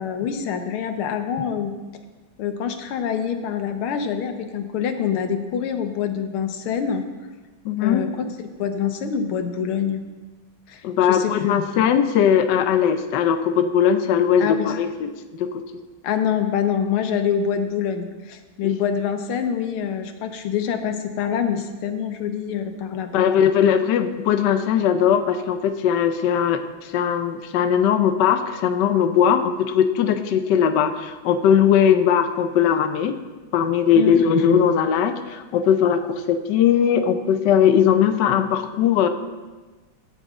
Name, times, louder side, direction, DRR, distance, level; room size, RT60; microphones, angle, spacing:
voice 1, 0.0-1.7 2.4-7.0 7.8-8.3 8.6-10.0 10.7-11.6 14.4-14.7 16.0-23.2 33.9-34.2, left 8 dB, 85° left, 7 dB, 1.8 m, -25 dB
voice 2, 7.6-8.0 10.8-15.1 15.4-15.6 18.6-18.7 23.1-33.2 33.5-39.1, left 8 dB, 70° left, 7 dB, 1.2 m, -19 dB
14.0 x 8.3 x 3.7 m, 1.2 s
omnidirectional pair, 2.3 m